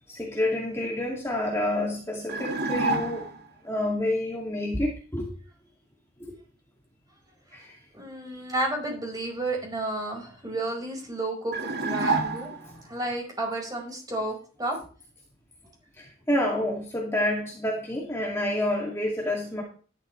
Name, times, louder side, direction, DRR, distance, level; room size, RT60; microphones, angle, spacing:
voice 1, 0.1-3.2 3.6-5.3 6.2-6.4 7.5-7.8 12.6-12.8 16.0-19.6, left 1 dB, 15° left, -1 dB, 2.4 m, -28 dB
sound 1, 2.3-3.5 11.5-12.8, right 3 dB, 55° right, 2.0 m, -28 dB
voice 2, 7.9-12.5 12.9-14.8, right 1 dB, 20° right, 0 dB, 5.2 m, -31 dB
12.5 x 11.5 x 3.3 m, 0.39 s
head